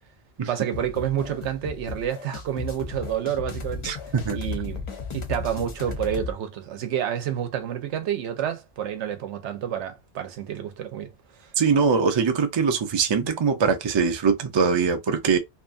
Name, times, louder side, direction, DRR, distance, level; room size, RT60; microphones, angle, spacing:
voice 1, 0.5-4.0 4.3-4.8 5.1-11.1 11.4-11.5, right 10 dB, 80° right, 0.9 m, -29 dB
sound 1, 0.7-6.3, left 4 dB, 40° left, 0.5 m, -35 dB
voice 2, 3.8-4.4 11.6-15.4, right 5 dB, 50° right, 0.3 m, -22 dB
2.8 x 2.3 x 2.5 m
omnidirectional pair, 1.2 m